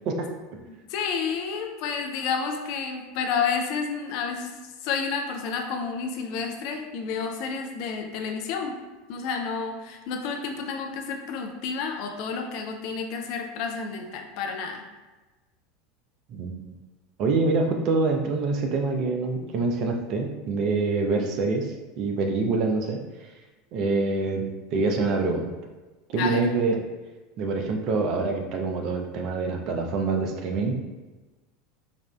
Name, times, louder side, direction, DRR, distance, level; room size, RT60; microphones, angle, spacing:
voice 1, 0.1-0.6 16.3-16.5 17.2-23.0 23.7-25.5 26.1-26.8 27.4-30.7, right 3 dB, 50° right, 3 dB, 0.5 m, -26 dB
voice 2, 0.9-4.5 4.8-8.8 9.1-14.8 26.2-26.4, left 5 dB, 55° left, 3 dB, 0.5 m, -30 dB
4.9 x 2.5 x 2.2 m, 1.2 s
figure-of-eight pair, 80°, 0 cm